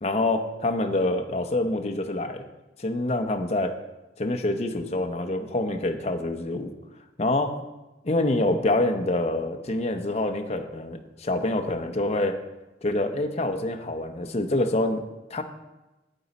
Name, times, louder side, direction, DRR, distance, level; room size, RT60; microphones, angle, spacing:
voice 1, 0.0-2.4 2.8-3.8 4.2-6.7 7.2-7.5 8.0-12.4 12.8-15.0 15.3-15.4, left 2 dB, 35° left, 5 dB, 0.7 m, -26 dB
9.2 x 8.0 x 4.1 m, 1.0 s
head